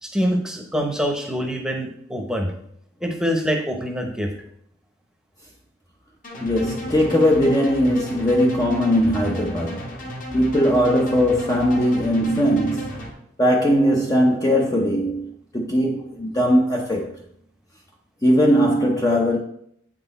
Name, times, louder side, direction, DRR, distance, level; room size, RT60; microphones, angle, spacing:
voice 1, 0.0-2.5 3.0-4.3, equal, 5° right, 1.0 m, -25 dB
sound 1, 6.2-13.1, left 1 dB, 40° left, 1.5 m, -34 dB
voice 2, 6.4-10.0 10.3-13.0 13.4-15.3 15.5-17.1 18.2-19.4, equal, 20° left, 0.7 m, -19 dB
8.6 x 6.1 x 4.1 m
head